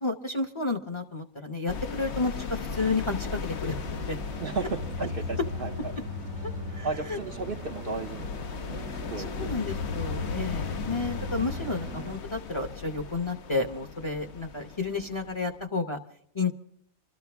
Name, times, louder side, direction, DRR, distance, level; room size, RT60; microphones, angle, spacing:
voice 1, 0.0-3.7 4.1-4.2 6.7-7.2 9.3-16.0 16.3-16.5, left 3 dB, 25° left, 3 dB, 0.9 m, -31 dB
sound 1, 1.7-15.6, left 5 dB, 60° left, 1.0 m, -38 dB
sound 2, 3.6-12.1, left 2 dB, 75° right, 1.3 m, -38 dB
voice 2, 4.4-5.9 6.8-8.4 8.7-9.5, right 4 dB, 50° right, 3 dB, 0.9 m, -34 dB
26.0 x 13.5 x 3.5 m, 0.66 s
omnidirectional pair, 1.4 m